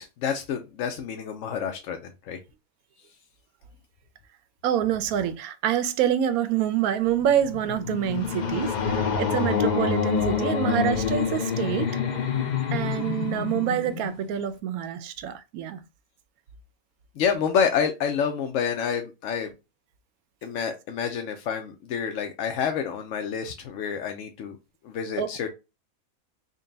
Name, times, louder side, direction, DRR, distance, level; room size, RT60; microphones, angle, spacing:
voice 1, 0.0-2.4 17.2-19.5 20.4-24.6 24.8-25.5, left 7 dB, 70° left, 0.9 m, -28 dB
voice 2, 4.6-11.9 12.7-15.8 25.2-25.3, right 10 dB, 85° right, 1.0 m, -26 dB
sound 1, 7.1-14.5, left 6 dB, 55° left, 0.5 m, -27 dB
3.9 x 2.2 x 3.7 m
omnidirectional pair, 1.5 m